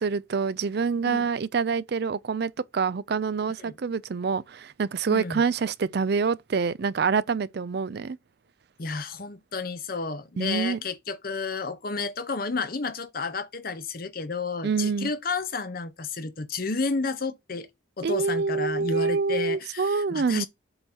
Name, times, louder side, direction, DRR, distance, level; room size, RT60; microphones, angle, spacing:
voice 1, 0.0-8.2 10.4-10.8 14.6-15.1 18.0-20.5, right 5 dB, 55° right, 0.4 m, -26 dB
voice 2, 5.1-5.4 8.8-17.7 18.0-20.5, left 4 dB, 50° left, 0.8 m, -31 dB
7.8 x 2.9 x 6.0 m
head